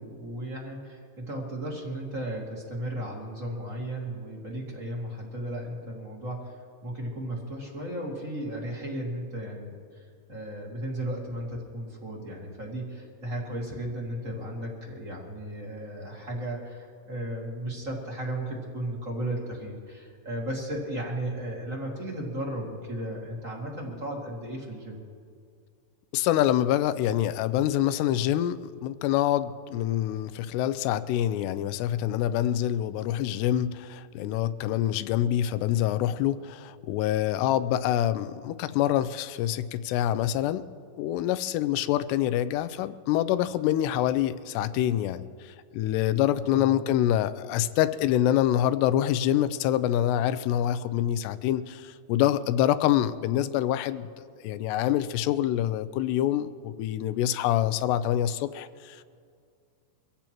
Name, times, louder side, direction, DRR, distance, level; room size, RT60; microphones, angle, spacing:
voice 1, 0.0-25.0 46.5-46.9, right 1 dB, 30° right, -2 dB, 1.7 m, -35 dB
voice 2, 26.1-40.6 41.0-54.1 54.4-59.0, left 12 dB, 90° left, 14 dB, 2.7 m, -26 dB
24.5 x 15.5 x 3.0 m, 2.2 s
omnidirectional pair, 4.8 m